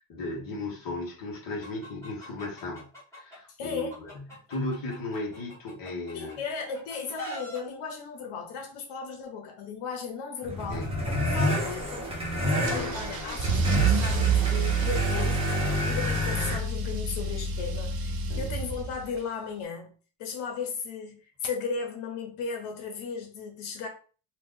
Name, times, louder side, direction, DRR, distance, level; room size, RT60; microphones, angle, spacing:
voice 1, 0.0-2.9 3.1-3.9 4.1-6.4 10.7-10.9 11.5-11.7 12.6-13.7 18.3-18.5, left 2 dB, 45° left, 1.2 m, -36 dB
Chicken rooster, 1.6-3.4 3.8-6.3 6.7-7.6, equal, 5° left, 1.2 m, -42 dB
voice 2, 3.6-4.0 6.1-12.1 12.5-19.9 20.2-23.9, left 5 dB, 85° left, 0.9 m, -36 dB
sound 1, 10.4-16.6, left 1 dB, 10° right, 0.9 m, -29 dB
Car / Engine starting / Accelerating revving vroom, 12.7-19.2, right 4 dB, 50° right, 0.6 m, -28 dB
2.9 x 2.4 x 3.6 m
cardioid pair, 165°, 47 cm